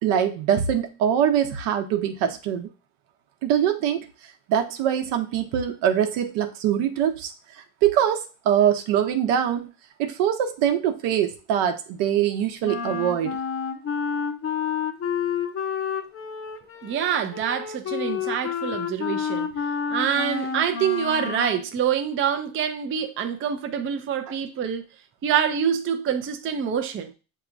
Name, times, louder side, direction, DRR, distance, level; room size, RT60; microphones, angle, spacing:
voice 1, 0.0-2.7 3.4-4.1 4.5-7.3 7.8-9.7 10.0-13.4, right 9 dB, 75° right, 0.9 m, -23 dB
Wind instrument woodwind instrument, 12.6-21.6, left 7 dB, 30° left, 0.6 m, -29 dB
voice 2, 16.8-19.5 19.9-24.8 25.2-27.1, right 8 dB, 25° right, 0.4 m, -26 dB
6.8 x 2.9 x 2.5 m
supercardioid pair, 95°, 49 cm